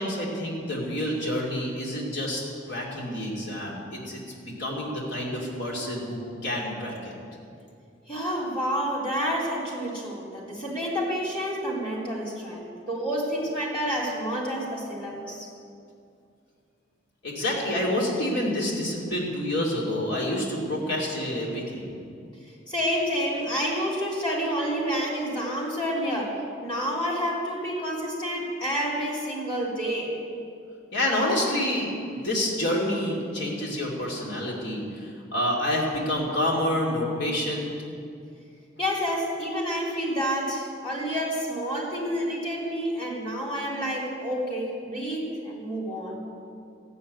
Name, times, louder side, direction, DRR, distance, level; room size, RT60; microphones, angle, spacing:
voice 1, 0.0-2.4 2.7-7.1 17.2-22.0 30.9-31.9 32.2-37.7, left 1 dB, 65° left, -4 dB, 2.7 m, -28 dB
voice 2, 8.1-15.5 22.4-30.1 38.8-46.2, equal, 25° left, -4 dB, 3.1 m, -29 dB
14.0 x 7.1 x 9.4 m, 2.4 s
head